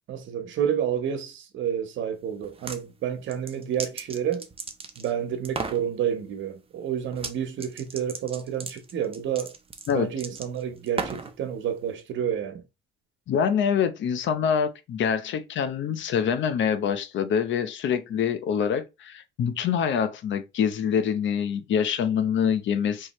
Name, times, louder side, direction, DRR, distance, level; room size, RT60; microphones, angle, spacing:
voice 1, 0.1-4.5 5.0-9.5 9.9-12.7, right 9 dB, 75° right, 1.0 m, -29 dB
sound 1, 2.4-2.8 3.3-5.1 5.4-5.8 7.1-7.3 7.6-11.3, right 4 dB, 30° right, 0.8 m, -35 dB
voice 2, 13.3-23.1, left 7 dB, 70° left, 0.8 m, -25 dB
4.6 x 3.1 x 3.0 m
cardioid pair, 90°, 20 cm